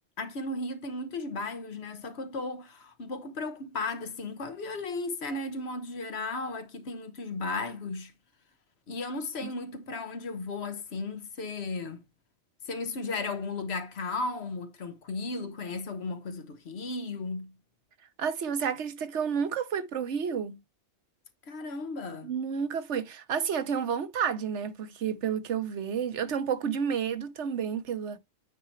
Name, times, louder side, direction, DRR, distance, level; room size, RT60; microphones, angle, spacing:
voice 1, 0.2-8.1 8.9-12.0 12.6-17.5 21.5-22.3, left 3 dB, 65° left, 1.3 m, -35 dB
voice 2, 18.2-20.6 22.2-28.2, right 7 dB, 80° right, 1.2 m, -30 dB
9.1 x 4.8 x 3.1 m
omnidirectional pair, 1.2 m